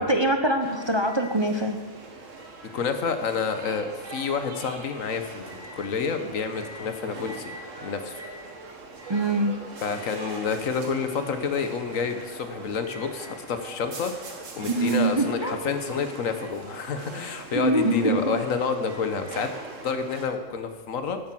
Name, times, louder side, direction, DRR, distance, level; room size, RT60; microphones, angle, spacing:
voice 1, 0.0-1.8 9.1-9.6 14.6-15.7 17.5-18.4, right 2 dB, 25° right, 5 dB, 0.6 m, -24 dB
sound 1, 0.6-20.3, right 3 dB, 75° right, 1.9 m, -41 dB
voice 2, 2.7-7.5 7.8-8.2 9.8-19.5 19.8-21.2, left 5 dB, 85° left, 8 dB, 1.5 m, -29 dB
12.0 x 8.5 x 7.6 m, 1.3 s
omnidirectional pair, 1.3 m